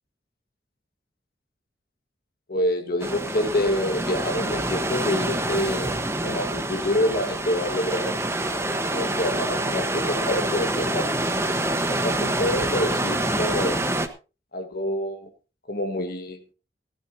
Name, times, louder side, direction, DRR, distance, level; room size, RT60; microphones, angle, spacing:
voice 1, 2.5-5.9 6.2-8.2 8.8-11.1 11.7-13.8 14.5-15.3 15.7-16.4, left 1 dB, 60° left, 6 dB, 1.6 m, -27 dB
sound 1, 3.0-14.1, right 1 dB, 15° right, 1.2 m, -26 dB
19.0 x 13.0 x 2.8 m, 0.32 s
head